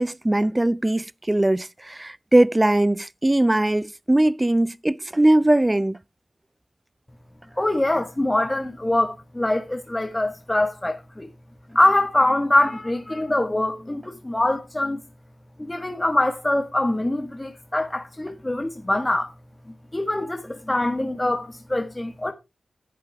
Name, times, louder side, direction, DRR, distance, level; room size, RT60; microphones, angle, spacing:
voice 1, 0.0-6.0, right 1 dB, 25° right, 0.5 m, -20 dB
voice 2, 7.6-11.3 11.7-15.0 15.6-19.3 19.9-22.3, left 1 dB, 20° left, 1.5 m, -23 dB
11.0 x 8.4 x 3.4 m
cardioid pair, 40°, 0 cm